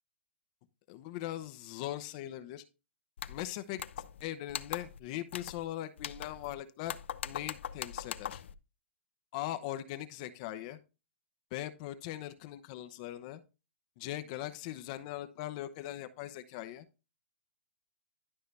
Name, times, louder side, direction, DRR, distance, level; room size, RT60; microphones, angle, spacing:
voice 1, 0.9-2.6 3.3-7.0 7.2-8.4 9.3-10.8 11.5-13.4 14.0-16.9, left 13 dB, 35° left, 10 dB, 0.8 m, -40 dB
sound 1, 3.2-3.4 3.8-4.2 4.5-5.0 5.3-5.6 6.0-6.5 6.9-8.5, left 9 dB, 75° left, 0.7 m, -41 dB
11.5 x 5.6 x 3.3 m, 0.29 s
hypercardioid pair, 155°, 6 cm